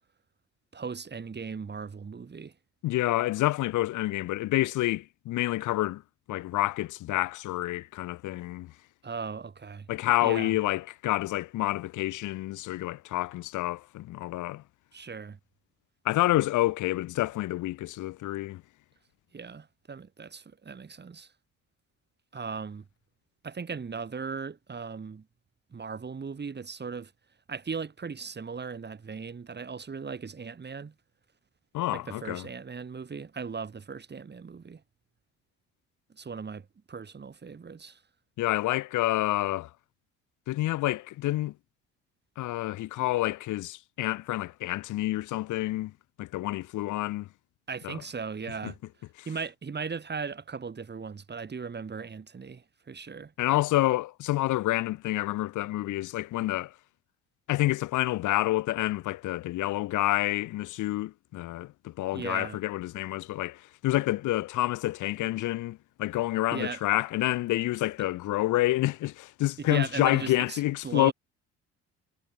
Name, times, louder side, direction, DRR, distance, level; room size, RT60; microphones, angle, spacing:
voice 1, 0.7-2.5 9.0-9.9 10.2-10.6 14.9-15.4 19.3-21.3 22.3-22.8 23.4-25.2 25.7-27.1 27.5-30.9 31.9-34.8 36.2-38.0 47.7-48.8 49.3-53.3 62.1-62.6 66.5-66.8 69.6-71.1, right 5 dB, 35° right, 5.5 m, -37 dB
voice 2, 2.8-6.0 6.3-8.7 9.9-14.6 16.0-18.6 31.7-32.5 38.4-39.7 40.5-41.5 42.4-45.9 46.2-47.3 47.8-48.0 48.6-48.7 53.4-56.7 57.5-71.1, left 16 dB, 70° left, 1.1 m, -28 dB
cardioid pair, 85°, 31 cm